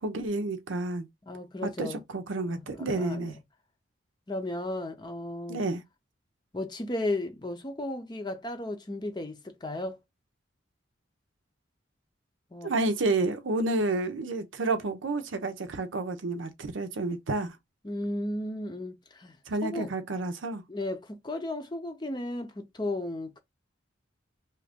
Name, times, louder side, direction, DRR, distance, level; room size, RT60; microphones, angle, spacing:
voice 1, 0.0-1.1 1.6-3.4 5.5-5.8 12.6-17.6 19.5-20.6, right 2 dB, 85° right, 0.6 m, -30 dB
voice 2, 1.3-2.0 2.4-3.3 4.3-5.6 6.5-10.0 12.5-12.7 17.8-19.4 19.6-19.9 20.7-23.4, left 1 dB, 20° left, 0.6 m, -34 dB
2.9 x 2.4 x 3.5 m
head